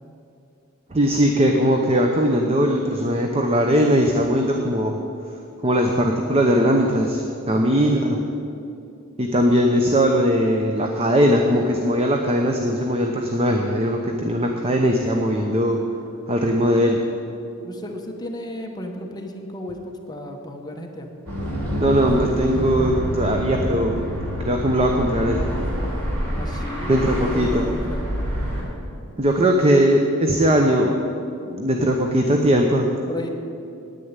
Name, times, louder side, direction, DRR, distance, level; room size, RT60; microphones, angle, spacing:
voice 1, 0.9-5.0 5.6-8.2 9.2-15.8 16.3-17.0 21.8-24.0 24.4-25.4 26.9-27.6 29.2-31.0 31.5-32.9, equal, 25° right, 3 dB, 0.8 m, -19 dB
voice 2, 7.5-8.0 8.4-8.5 17.6-21.1 26.3-28.0 33.1-33.3, left 1 dB, 20° left, 2 dB, 1.0 m, -33 dB
sound 1, 21.3-28.6, equal, 85° right, 3.1 m, -27 dB
10.0 x 9.4 x 8.9 m, 2.6 s
head